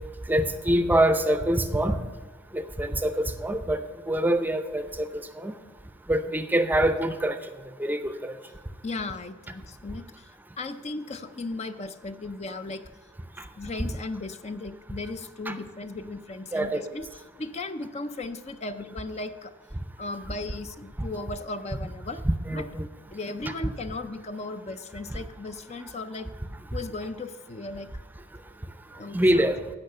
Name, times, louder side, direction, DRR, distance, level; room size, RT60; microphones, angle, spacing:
voice 1, 0.3-2.0 2.5-5.6 6.1-7.4 7.8-8.4 15.5-15.6 16.5-16.8 22.2-22.9 29.1-29.6, right 1 dB, 10° right, 10 dB, 0.6 m, -25 dB
voice 2, 8.8-10.3 10.6-12.8 13.6-17.1 17.4-19.6 20.0-22.2 22.5-22.7 23.1-26.3 26.7-27.9 29.0-29.5, left 2 dB, 35° left, 10 dB, 0.5 m, -36 dB
15.5 x 5.5 x 6.7 m, 1.3 s
head